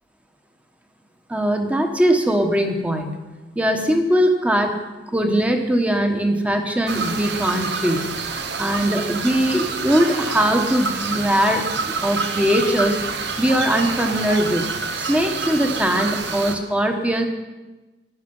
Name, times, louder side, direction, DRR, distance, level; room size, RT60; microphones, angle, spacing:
voice 1, 1.3-3.1 3.5-4.7 5.1-8.1 8.6-13.0 13.4-17.3, equal, 10° right, 4 dB, 1.2 m, -20 dB
sound 1, 6.9-16.6, right 4 dB, 80° right, 1.1 m, -27 dB
13.5 x 10.5 x 5.5 m, 1.2 s
head